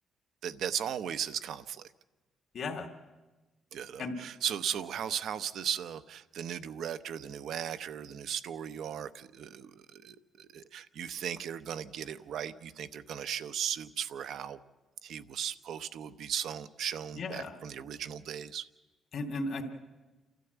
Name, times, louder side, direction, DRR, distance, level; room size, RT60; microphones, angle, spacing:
voice 1, 0.4-1.9 3.7-14.6 15.0-18.6, right 9 dB, 75° right, 12 dB, 0.8 m, -37 dB
voice 2, 2.5-2.9 4.0-4.1 17.2-17.5 19.1-19.6, left 3 dB, 60° left, 1 dB, 2.5 m, -35 dB
28.5 x 13.0 x 8.1 m, 1.2 s
cardioid pair, 90°, 0 cm